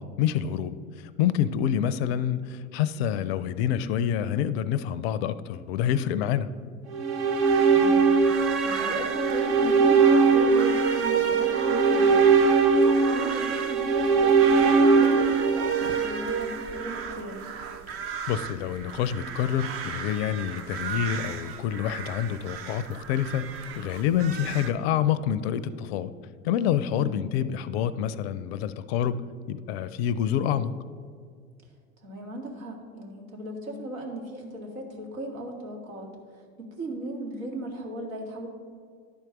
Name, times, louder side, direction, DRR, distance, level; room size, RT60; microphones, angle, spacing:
voice 1, 0.0-6.5 18.3-23.5 23.8-26.1 26.4-29.2 29.5-30.7, left 9 dB, 50° left, 15 dB, 0.5 m, -27 dB
sound 1, 6.9-17.1, right 5 dB, 55° right, 1.1 m, -21 dB
sound 2, 7.4-24.7, right 7 dB, 35° right, 0.7 m, -38 dB
voice 2, 7.6-8.1 8.6-12.3 12.7-17.4 27.0-27.2 32.0-36.1 36.6-38.5, right 1 dB, 70° right, 1 dB, 2.0 m, -36 dB
10.5 x 4.6 x 5.8 m, 2.1 s
figure-of-eight pair, 85°, 42 cm